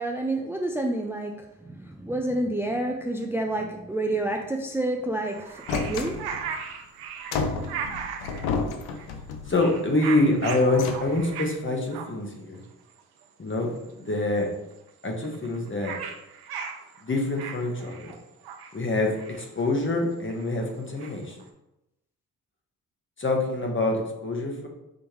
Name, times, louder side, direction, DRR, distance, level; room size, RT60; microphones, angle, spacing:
voice 1, 0.0-6.2, right 1 dB, 5° right, 2 dB, 0.5 m, -29 dB
sound 1, 5.2-8.5 9.0-9.2 9.5-11.6 11.9-12.1 12.7-12.8 13.0-13.2 13.5-13.9 14.1-14.2 14.4-14.5 14.7-21.4, right 7 dB, 80° right, 0.7 m, -38 dB
sound 2, 5.7-6.6 7.3-9.6 10.3-11.4, left 4 dB, 85° left, 0.6 m, -31 dB
voice 2, 9.5-12.6 13.4-13.7 14.0-14.5 15.0-16.0 17.0-18.1 18.7-21.4 23.2-24.7, left 2 dB, 35° left, 1 dB, 1.3 m, -26 dB
5.0 x 3.5 x 3.1 m, 0.92 s
supercardioid pair, 50°, 36 cm